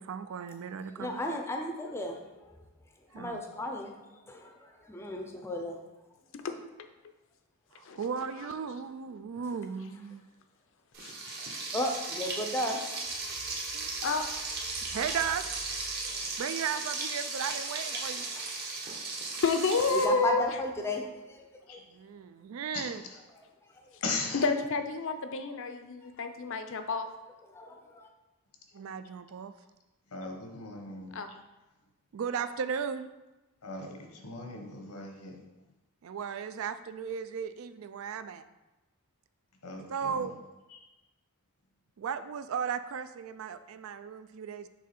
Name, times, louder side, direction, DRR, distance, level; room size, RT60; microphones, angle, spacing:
voice 1, 0.0-1.2 3.1-3.4 7.7-10.2 13.7-13.9 14.9-15.5 16.4-18.3 21.9-23.0 28.7-29.5 32.1-33.1 36.0-38.5 39.9-40.3 42.0-44.7, right 7 dB, 65° right, 11 dB, 0.3 m, -36 dB
voice 2, 0.9-5.9 9.2-9.3 11.4-14.0 15.1-15.2 16.0-16.1 18.0-19.4 19.9-21.8 23.3-24.0 26.0-26.2 27.4-28.1, left 1 dB, 10° left, 2 dB, 0.5 m, -37 dB
Frying (food), 10.9-20.1, right 3 dB, 45° right, 1.0 m, -36 dB
voice 3, 11.0-11.6 13.7-14.3 19.4-20.4 24.4-27.1 31.1-31.3, left 3 dB, 60° left, 7 dB, 0.5 m, -30 dB
voice 4, 22.7-23.2 24.0-24.4 28.7-28.8 30.1-31.2 33.6-35.4 39.6-40.3 40.7-40.8, left 3 dB, 90° left, 2 dB, 1.1 m, -39 dB
6.2 x 3.6 x 4.3 m, 1.0 s
head